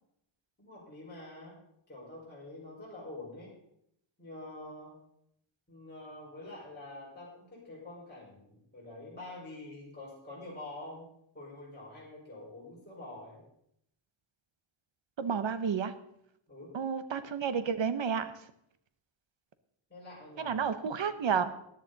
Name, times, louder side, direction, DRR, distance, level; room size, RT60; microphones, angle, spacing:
voice 1, 0.6-1.5 1.9-3.5 4.2-4.9 5.7-11.1 11.3-13.4 16.5-16.7 19.9-20.5, left 2 dB, 20° left, -7 dB, 4.9 m, -46 dB
voice 2, 15.2-15.9 16.7-18.3 20.4-21.5, right 6 dB, 60° right, 12 dB, 1.0 m, -31 dB
14.5 x 10.0 x 4.0 m, 0.74 s
wide cardioid pair, 160°, 50 cm